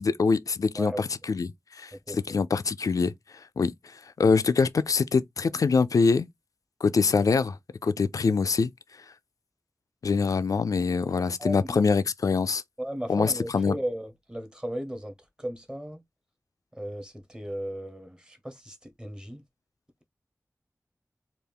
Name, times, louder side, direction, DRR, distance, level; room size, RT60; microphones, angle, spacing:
voice 1, 0.0-3.1 3.6-3.7 4.2-6.3 6.8-7.6 7.8-8.7 10.0-12.6 13.1-13.8, left 4 dB, 85° left, 0.3 m, -24 dB
voice 2, 11.4-11.8 12.8-15.1 15.4-16.0 16.8-19.4, right 1 dB, 15° right, 1.0 m, -35 dB
3.4 x 2.4 x 3.5 m
wide cardioid pair, 55°, 6 cm